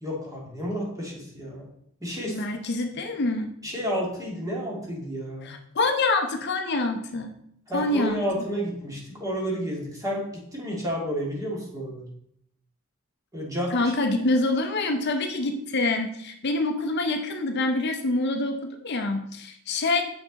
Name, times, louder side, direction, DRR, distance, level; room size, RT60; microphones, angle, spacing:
voice 1, 0.0-1.6 2.0-2.4 3.6-5.5 7.7-10.3 10.5-12.1 13.3-13.7, equal, 15° right, -4 dB, 2.1 m, -31 dB
voice 2, 2.3-3.5 5.4-7.3 7.7-8.2 13.7-20.0, left 2 dB, 50° left, 5 dB, 0.6 m, -26 dB
7.0 x 5.9 x 3.9 m, 0.72 s
head